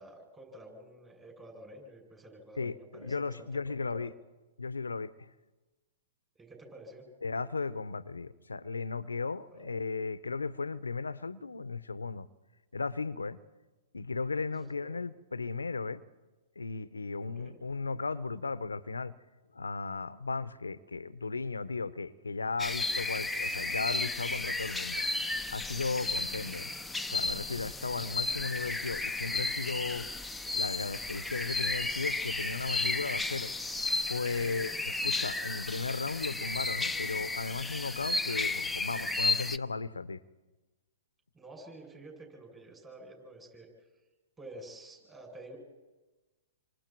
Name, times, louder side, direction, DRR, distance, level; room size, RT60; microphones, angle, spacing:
voice 1, 0.0-4.1 6.4-7.0 9.5-9.6 14.5-14.9 17.2-17.4 34.3-34.8 41.3-43.7 44.4-45.6, right 1 dB, 15° right, 7.9 m, -50 dB
voice 2, 2.6-4.1 4.6-5.3 7.2-12.3 12.7-13.4 13.9-16.0 16.6-19.1 19.5-25.0 25.5-26.7 27.1-30.1 30.5-33.5 34.1-34.7 35.0-40.2, left 4 dB, 90° left, 0.8 m, -35 dB
sound 1, 22.6-39.6, left 3 dB, 5° left, 0.7 m, -33 dB
28.0 x 25.5 x 4.6 m
hypercardioid pair, 115°, 0 cm